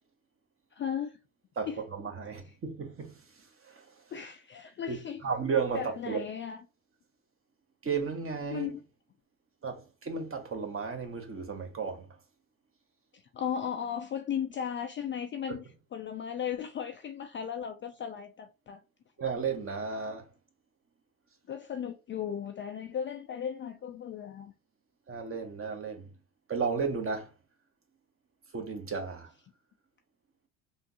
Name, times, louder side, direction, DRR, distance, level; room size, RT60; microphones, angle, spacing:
voice 1, 0.7-1.1 1.7-1.8 4.1-5.2 5.7-6.6 8.5-8.8 13.1-15.7 15.9-18.8 21.5-24.5, left 8 dB, 30° left, 0.4 m, -36 dB
voice 2, 1.6-3.2 3.6-3.9 4.9-5.0 5.2-6.2 7.8-8.7 9.6-12.1 19.2-20.3 25.1-26.1 26.5-27.3 28.5-29.3, right 5 dB, 30° right, 1.2 m, -33 dB
3.5 x 2.6 x 2.7 m
hypercardioid pair, 70°, 43 cm